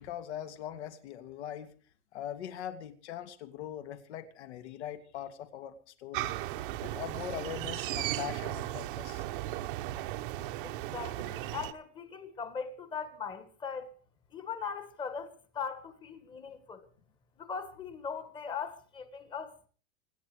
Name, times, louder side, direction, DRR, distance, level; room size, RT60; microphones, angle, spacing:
voice 1, 0.0-1.7 2.1-6.3 6.8-9.2, left 10 dB, 65° left, 2.8 m, -41 dB
sound 1, 6.1-11.7, right 15 dB, 45° right, 1.1 m, -36 dB
voice 2, 10.6-13.9 14.3-16.9 17.4-19.7, left 6 dB, 15° left, 1.6 m, -40 dB
26.0 x 10.0 x 5.0 m
supercardioid pair, 170°, 36 cm